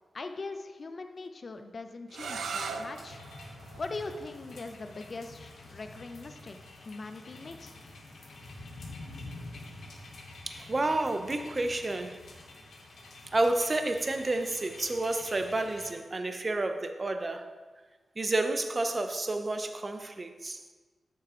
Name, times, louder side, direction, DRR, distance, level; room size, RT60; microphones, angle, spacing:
voice 1, 0.1-3.2 3.8-6.6 6.8-7.8, left 3 dB, 50° left, 7 dB, 0.7 m, -41 dB
sound 1, 2.1-7.8, right 5 dB, 90° right, 0.5 m, -42 dB
sound 2, 2.2-15.9, left 2 dB, 80° left, 1.3 m, -48 dB
voice 2, 10.5-12.2 13.3-17.5 18.2-20.6, right 2 dB, 35° right, 7 dB, 0.7 m, -30 dB
6.7 x 6.3 x 4.3 m, 1.3 s
cardioid pair, 80°, 0 cm